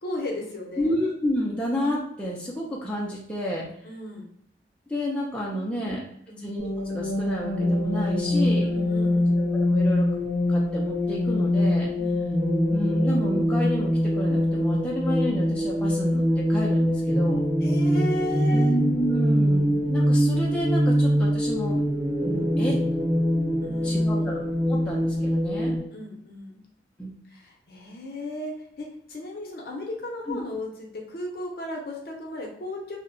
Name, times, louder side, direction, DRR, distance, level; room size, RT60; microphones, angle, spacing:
voice 1, 0.0-0.9 3.8-4.3 5.5-6.5 8.6-9.3 11.9-12.2 17.6-18.7 23.6-24.3 25.6-26.6 27.3-33.0, left 1 dB, 55° left, 0 dB, 0.6 m, -35 dB
voice 2, 0.8-3.6 4.9-6.0 6.4-8.7 9.5-10.1 10.5-12.0 12.7-13.9 14.2-17.4 18.5-21.8 22.2-22.7 23.8-24.3 24.7-25.7 27.0-27.1 30.3-30.4, equal, 5° left, -4 dB, 0.3 m, -30 dB
sound 1, 6.6-25.8, equal, 70° right, 0.7 m, -23 dB
2.7 x 2.1 x 2.5 m, 0.72 s
head